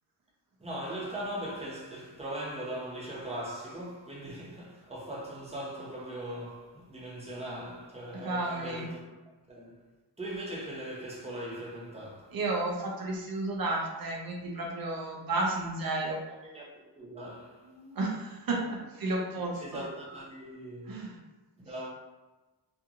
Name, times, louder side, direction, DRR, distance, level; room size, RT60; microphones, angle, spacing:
voice 1, 0.6-9.0 9.5-9.8 10.2-12.4 16.3-17.7 19.3-21.1 21.6-21.9, right 1 dB, 15° right, 0.7 m, -40 dB
voice 2, 8.2-8.9 12.3-16.2 17.7-19.8 20.9-21.2, right 2 dB, 55° right, 0.7 m, -32 dB
2.8 x 2.5 x 2.5 m
wide cardioid pair, 110°, 44 cm